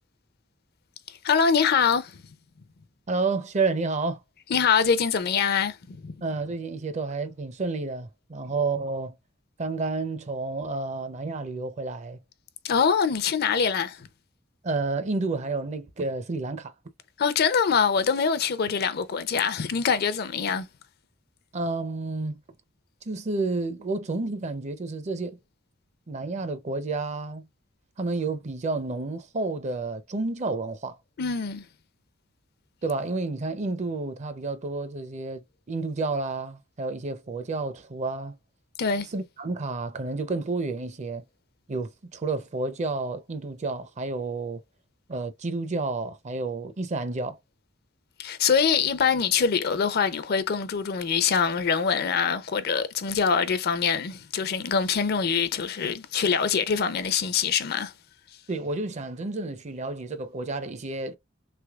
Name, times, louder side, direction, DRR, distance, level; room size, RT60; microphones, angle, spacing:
voice 1, 1.1-2.2 4.5-6.1 12.6-14.1 17.2-20.7 31.2-31.6 38.8-39.1 48.2-57.9, left 6 dB, 55° left, 0.5 m, -24 dB
voice 2, 3.1-4.2 6.2-9.2 9.6-12.2 14.6-16.7 21.5-22.4 23.1-25.4 26.1-27.5 28.0-31.0 32.8-38.4 39.1-41.2 41.7-44.6 45.1-47.4 58.5-61.2, right 3 dB, 35° right, 0.5 m, -30 dB
3.4 x 3.2 x 2.3 m
head